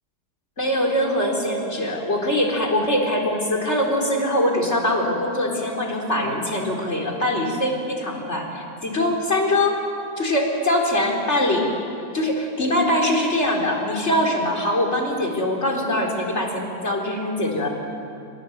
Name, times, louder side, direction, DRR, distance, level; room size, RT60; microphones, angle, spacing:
voice 1, 0.6-9.8 10.2-11.7 12.1-17.7, left 1 dB, 40° left, 0 dB, 4.4 m, -22 dB
27.0 x 26.5 x 8.3 m, 2.6 s
omnidirectional pair, 1.8 m